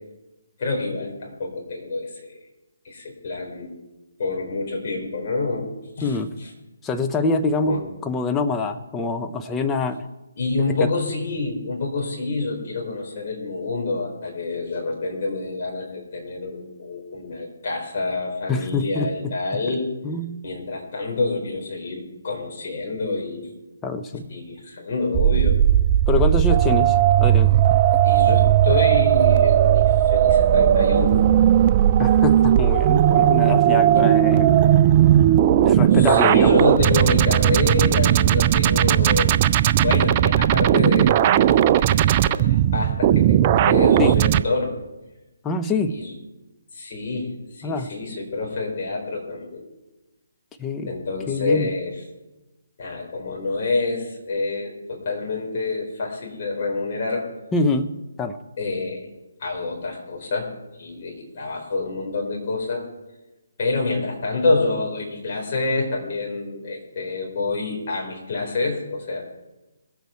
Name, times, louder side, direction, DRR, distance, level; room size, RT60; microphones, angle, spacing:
voice 1, 0.6-2.4 2.8-3.8 4.2-6.5 7.7-7.9 10.4-19.9 20.4-23.5 24.3-25.6 28.0-31.3 36.0-39.4 39.8-41.4 41.7-44.8 45.9-46.1 46.7-49.6 50.8-52.0 52.8-57.2 58.6-59.1 59.4-60.5 60.8-62.8 63.6-69.3, left 3 dB, 45° left, -1 dB, 4.3 m, -27 dB
voice 2, 6.0-6.3 6.8-10.1 10.8-10.9 18.5-19.3 20.0-20.5 23.8-24.2 26.1-27.5 32.0-34.5 35.6-36.8 44.0-44.2 45.4-46.0 47.6-47.9 50.6-50.9 51.3-51.7 57.5-58.4, left 3 dB, 10° left, 6 dB, 0.7 m, -25 dB
sound 1, 25.1-44.4, right 11 dB, 30° right, 0.4 m, -17 dB
22.5 x 8.2 x 4.5 m, 1.0 s
figure-of-eight pair, 150°, 0 cm